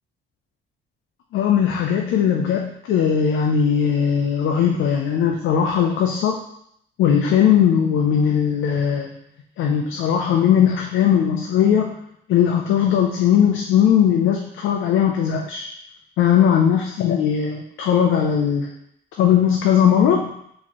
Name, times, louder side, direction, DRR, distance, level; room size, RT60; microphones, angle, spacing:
voice 1, 1.3-6.4 7.0-9.1 9.6-12.0 12.3-15.7 16.2-18.7 19.2-20.3, left 8 dB, 80° left, 1 dB, 0.5 m, -19 dB
4.2 x 3.0 x 2.9 m, 0.72 s
cardioid pair, 90°, 20 cm